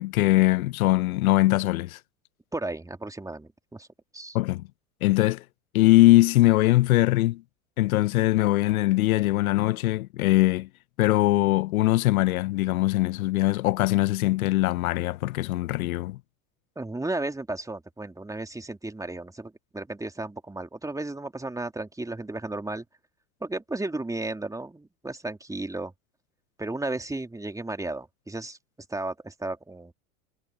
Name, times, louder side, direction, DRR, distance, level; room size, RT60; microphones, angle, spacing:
voice 1, 0.0-2.0 4.3-4.6 5.0-5.4 5.7-7.4 7.8-10.7 11.0-16.2, left 18 dB, 70° left, 0.9 m, -21 dB
voice 2, 2.5-3.9 4.1-4.4 16.8-22.8 23.4-25.9 26.6-28.6 28.9-29.9, right 2 dB, 5° right, 3.0 m, -34 dB
hypercardioid pair, 90°, 44 cm